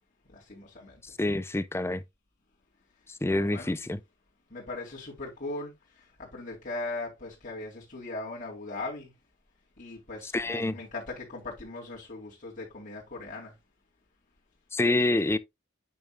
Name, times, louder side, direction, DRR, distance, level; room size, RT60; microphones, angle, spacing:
voice 1, 0.3-1.1 3.3-3.8 4.5-9.1 9.8-13.5, left 2 dB, 40° left, 3.6 m, -39 dB
voice 2, 1.2-2.0 3.1-4.0 10.3-10.8 14.7-15.4, left 2 dB, 10° left, 0.5 m, -27 dB
8.6 x 7.1 x 2.3 m
head